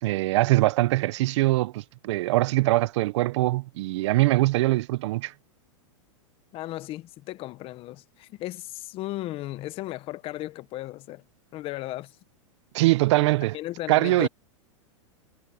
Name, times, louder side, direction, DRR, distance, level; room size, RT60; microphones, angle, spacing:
voice 1, 0.0-5.3 12.7-13.6 13.9-14.3, right 18 dB, 65° right, 0.6 m, -22 dB
voice 2, 6.5-11.2 11.5-12.2 13.5-14.3, left 16 dB, 35° left, 1.0 m, -35 dB
supercardioid pair, 140°, 16 cm